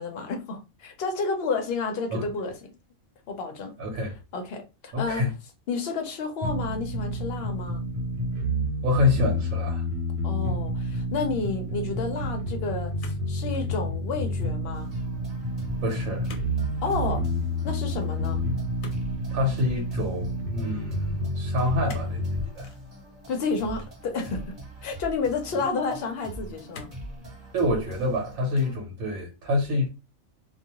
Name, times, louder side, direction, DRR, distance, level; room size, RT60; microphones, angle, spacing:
voice 1, 0.0-2.7 3.3-3.7 4.3-5.3 5.7-7.8 10.2-14.9 16.8-17.2 17.6-18.4 23.3-24.5 24.8-26.9, left 4 dB, 60° left, 0.7 m, -30 dB
voice 2, 3.8-4.2 4.9-5.3 8.8-9.8 15.8-16.3 19.3-22.2 22.6-22.7 27.5-29.9, left 2 dB, 80° right, 1.1 m, -27 dB
sound 1, 6.4-22.4, equal, 65° right, 0.8 m, -29 dB
sound 2, 13.0-13.8 14.1-14.5 16.3-16.5 16.8-17.0 18.8-19.6 21.9-22.2 22.6-22.8 23.8-24.5 25.2-25.3 26.7-27.1 27.7-28.2 28.5-28.9, left 2 dB, 90° left, 1.0 m, -45 dB
sound 3, 14.7-28.7, right 1 dB, 35° right, 0.9 m, -42 dB
2.3 x 2.2 x 2.8 m
omnidirectional pair, 1.4 m